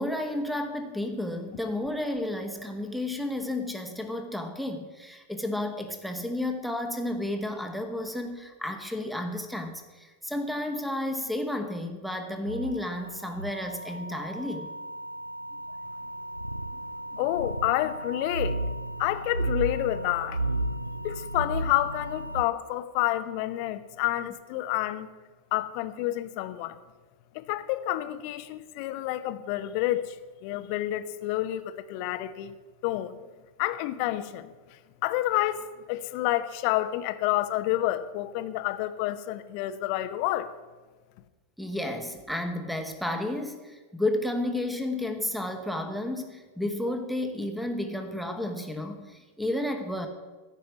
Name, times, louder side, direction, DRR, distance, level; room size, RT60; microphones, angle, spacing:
voice 1, 0.0-14.7 41.6-50.1, left 1 dB, ahead, 6 dB, 1.5 m, -32 dB
sound 1, 12.5-22.4, right 1 dB, 85° right, 0.3 m, -34 dB
voice 2, 17.1-18.6 19.0-20.4 21.0-25.1 25.5-26.7 27.3-30.2 30.4-32.5 32.8-33.2 33.6-34.5 35.0-40.5, left 15 dB, 45° left, 12 dB, 0.8 m, -29 dB
14.5 x 5.7 x 9.5 m, 1.3 s
figure-of-eight pair, 90°, 0 cm